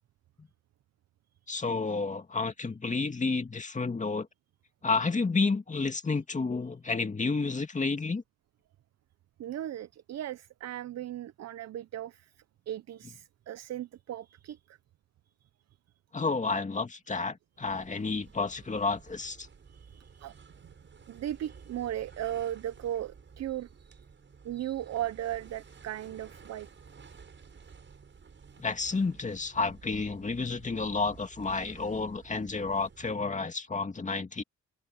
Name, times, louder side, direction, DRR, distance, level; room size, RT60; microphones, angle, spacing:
voice 1, 1.5-4.3 4.8-8.2 16.1-19.5 28.6-34.4, left 4 dB, 25° left, 2.3 m, -30 dB
voice 2, 9.4-14.8 15.3-15.5 19.7-20.7 21.1-24.0 24.4-26.7, right 12 dB, 60° right, 0.8 m, -37 dB
sound 1, 17.6-33.4, right 5 dB, 40° right, 6.8 m, -53 dB
cardioid pair, 90°, 30 cm